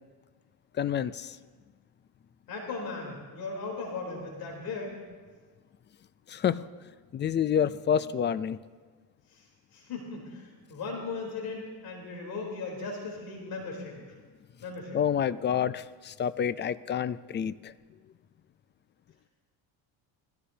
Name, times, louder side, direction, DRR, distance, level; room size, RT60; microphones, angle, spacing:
voice 1, 0.8-1.4 6.3-6.6 7.1-8.6 14.9-17.7, left 8 dB, 25° left, 16 dB, 0.4 m, -28 dB
voice 2, 2.5-5.0 9.7-14.0 14.6-15.0, left 3 dB, 55° left, -1 dB, 3.7 m, -37 dB
21.5 x 15.0 x 2.8 m, 1.5 s
supercardioid pair, 105°, 42 cm